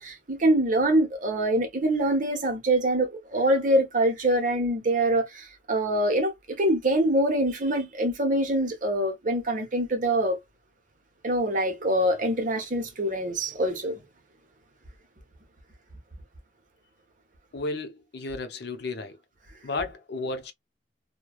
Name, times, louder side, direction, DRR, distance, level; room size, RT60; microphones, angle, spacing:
voice 1, 0.0-10.4 11.2-14.0, right 1 dB, 45° right, 0.9 m, -24 dB
voice 2, 17.5-19.2 19.6-20.5, left 3 dB, 65° left, 0.6 m, -33 dB
3.0 x 2.2 x 2.3 m
head